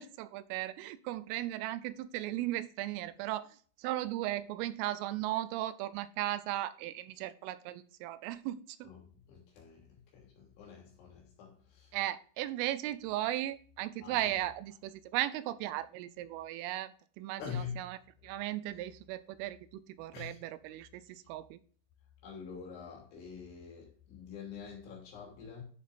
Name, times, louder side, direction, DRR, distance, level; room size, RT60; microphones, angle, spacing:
voice 1, 0.0-8.9 11.9-18.0 18.2-21.6, right 14 dB, 85° right, 3.1 m, -37 dB
voice 2, 9.3-11.9 14.0-14.4 17.4-17.9 20.1-20.4 22.2-25.6, left 6 dB, 65° left, 5.3 m, -45 dB
12.5 x 7.3 x 2.5 m
omnidirectional pair, 5.8 m